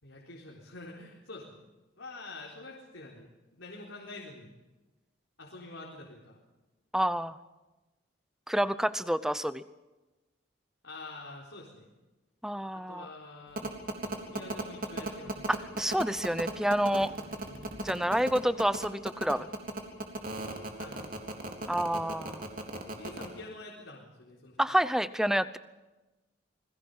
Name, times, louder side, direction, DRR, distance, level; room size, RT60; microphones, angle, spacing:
voice 1, 0.0-1.6 2.0-4.5 5.4-6.4 10.8-11.9 12.7-13.7 14.3-15.5 17.4-17.8 18.1-18.2 20.8-21.2 22.8-24.6, left 2 dB, 85° left, -3 dB, 4.2 m, -47 dB
voice 2, 6.9-7.4 8.5-9.6 12.4-13.1 15.5-17.1 17.8-19.5 21.7-22.5 24.6-25.6, equal, 5° right, 14 dB, 0.7 m, -28 dB
sound 1, 13.6-23.3, right 2 dB, 45° right, 3.6 m, -35 dB
28.5 x 21.0 x 5.6 m, 1.1 s
head